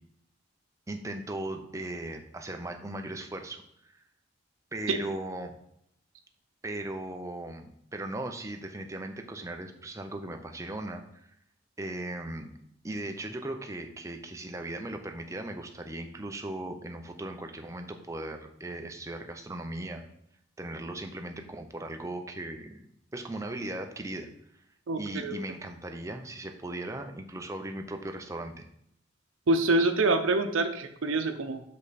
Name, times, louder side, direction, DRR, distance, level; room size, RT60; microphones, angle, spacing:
voice 1, 0.9-4.0 4.7-5.5 6.6-11.3 11.8-12.5 12.8-20.0 20.6-22.8 23.1-24.3 25.0-28.6, right 1 dB, 15° right, 5 dB, 0.6 m, -38 dB
voice 2, 24.9-25.4 29.5-31.6, right 2 dB, 90° right, 6 dB, 0.7 m, -26 dB
6.7 x 5.2 x 4.1 m, 0.72 s
head